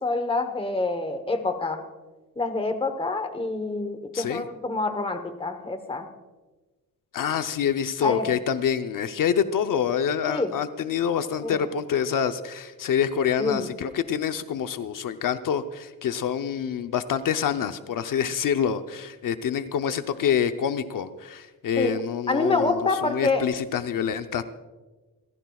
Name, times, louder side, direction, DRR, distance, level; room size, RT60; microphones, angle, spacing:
voice 1, 0.0-1.8 2.4-6.1 8.0-8.3 10.3-10.5 11.4-11.6 13.4-13.7 21.8-22.0 22.3-23.4, left 3 dB, 15° left, 7 dB, 1.0 m, -27 dB
voice 2, 4.1-4.4 7.1-24.4, left 8 dB, 65° left, 9 dB, 0.7 m, -26 dB
28.5 x 15.0 x 2.3 m, 1.2 s
wide cardioid pair, 170°, 35 cm